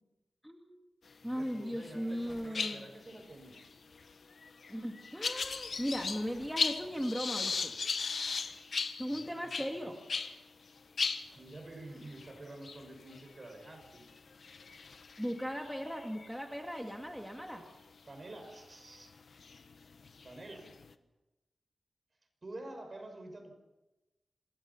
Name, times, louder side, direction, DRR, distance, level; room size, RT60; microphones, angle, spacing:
voice 1, 0.4-0.8 1.2-2.9 4.7-7.7 9.0-10.0 15.2-17.6, equal, ahead, 2 dB, 2.2 m, -37 dB
voice 2, 1.2-3.6 9.1-10.0 11.3-14.1 18.0-19.1 20.2-20.8 22.4-23.5, right 2 dB, 40° right, 5 dB, 6.1 m, -48 dB
sound 1, 1.4-1.9 2.2-10.4 10.7-10.8 11.0-16.8 17.4-17.6 18.5-18.6 19.2-20.9, left 5 dB, 70° left, 1.3 m, -38 dB
26.5 x 21.0 x 5.7 m, 1.0 s
wide cardioid pair, 90°, 0 cm